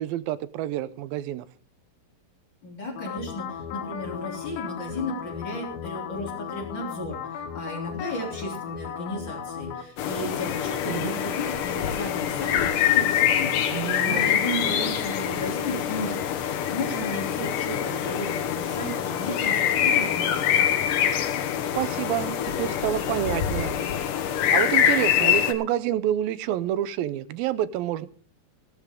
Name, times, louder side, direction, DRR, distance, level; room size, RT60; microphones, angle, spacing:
voice 1, 0.0-1.5 10.9-11.2 13.7-14.3 21.7-23.8 24.2-28.1, right 12 dB, 90° right, 15 dB, 2.5 m, -28 dB
voice 2, 2.6-20.8, left 1 dB, 30° left, -1 dB, 3.7 m, -34 dB
sound 1, 3.0-9.8, left 8 dB, 90° left, 3.4 m, -36 dB
sound 2, 10.0-25.5, left 9 dB, 70° left, 2.7 m, -25 dB
16.5 x 12.5 x 3.7 m, 0.43 s
omnidirectional pair, 4.1 m